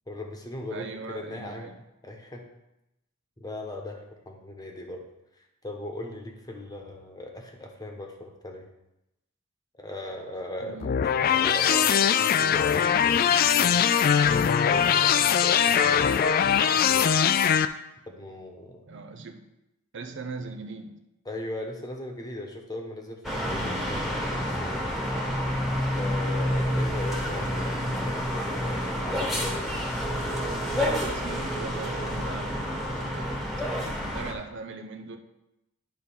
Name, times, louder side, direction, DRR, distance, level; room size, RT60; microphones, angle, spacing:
voice 1, 0.1-1.7 2.0-2.4 3.4-5.0 5.4-8.7 9.7-13.9 14.6-17.1 18.0-18.8 21.2-24.8 25.9-29.6, left 1 dB, 20° left, 2 dB, 1.1 m, -39 dB
voice 2, 0.7-1.8 10.6-10.9 18.9-19.4 19.9-21.0 30.6-33.5 33.7-35.2, right 4 dB, 60° right, 5 dB, 0.7 m, -40 dB
sound 1, 10.8-17.6, left 8 dB, 45° left, 0.3 m, -21 dB
sound 2, 23.2-34.3, equal, ahead, 1.3 m, -29 dB
10.5 x 3.7 x 5.5 m, 0.90 s
head